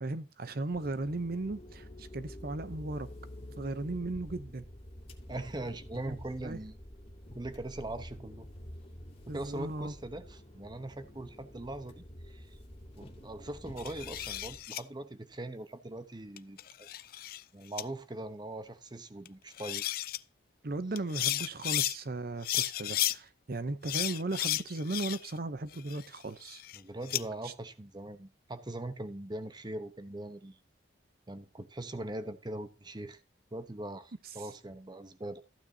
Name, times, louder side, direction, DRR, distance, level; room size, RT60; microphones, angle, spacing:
voice 1, 0.0-3.1 3.6-4.7 6.1-6.2 6.4-6.6 9.3-9.9 20.6-26.6 27.4-27.5, right 2 dB, 50° right, 0.7 m, -36 dB
sound 1, 0.7-14.6, equal, 30° left, 2.4 m, -48 dB
voice 2, 5.3-6.8 7.3-8.5 9.3-12.6 13.0-16.9 17.5-19.8 26.7-30.6 31.3-33.2 33.5-35.4, right 1 dB, 25° right, 0.9 m, -41 dB
sound 2, 13.8-14.8 16.4-17.4 17.8-17.9 19.3-19.4 19.6-20.2 21.0-22.0 22.4-23.2 23.9-25.4 25.7-27.2, left 14 dB, 50° left, 0.5 m, -33 dB
14.5 x 9.2 x 2.8 m
head